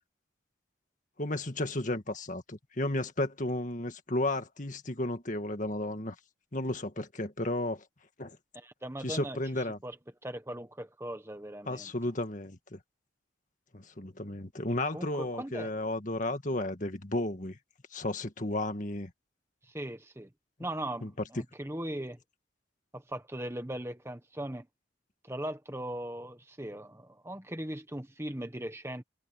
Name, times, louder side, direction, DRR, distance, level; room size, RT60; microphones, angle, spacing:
voice 1, 1.2-6.1 6.5-7.8 8.2-8.4 9.0-9.8 11.7-12.8 13.7-17.6 17.9-19.1 21.0-21.1, left 1 dB, 40° left, 1.9 m, -33 dB
voice 2, 8.5-9.4 9.8-10.0 10.2-11.9 14.9-15.7 19.6-20.3 20.6-22.2 22.9-24.7 25.2-29.0, right 1 dB, 15° right, 1.3 m, -39 dB
head